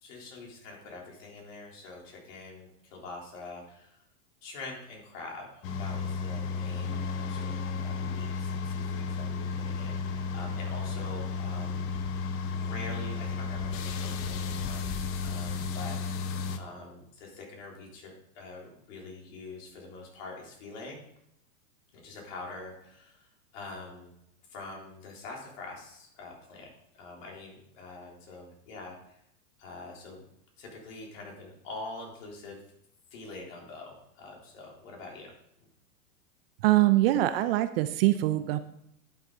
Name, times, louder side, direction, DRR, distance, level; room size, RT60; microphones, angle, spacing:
voice 1, 0.0-4.0 4.4-11.9 12.5-21.0 21.9-24.1 24.5-26.7 26.9-29.1 29.6-30.3 30.6-32.6 33.1-35.3, left 3 dB, 55° left, -1 dB, 3.6 m, -45 dB
sound 1, 5.6-16.6, left 5 dB, 30° left, 0.8 m, -33 dB
voice 2, 36.6-38.6, right 16 dB, 40° right, 12 dB, 0.5 m, -23 dB
11.0 x 6.5 x 4.0 m, 0.77 s
hypercardioid pair, 115°, 46 cm